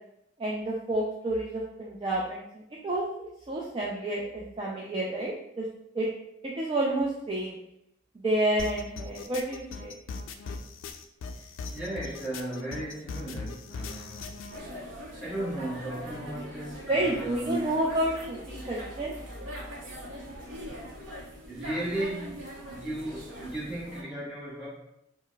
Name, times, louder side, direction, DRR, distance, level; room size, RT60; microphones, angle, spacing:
voice 1, 0.4-5.7 5.9-6.1 6.4-7.6 8.1-9.9 16.9-19.1, right 1 dB, 25° right, -4 dB, 0.3 m, -30 dB
sound 1, 8.6-14.6, left 4 dB, 85° left, 0.3 m, -39 dB
voice 2, 11.3-14.4 15.2-17.6 21.5-24.7, right 1 dB, 5° right, -9 dB, 1.1 m, -36 dB
sound 2, 14.5-24.0, equal, 70° right, 0.7 m, -42 dB
4.4 x 2.0 x 2.2 m, 0.79 s
head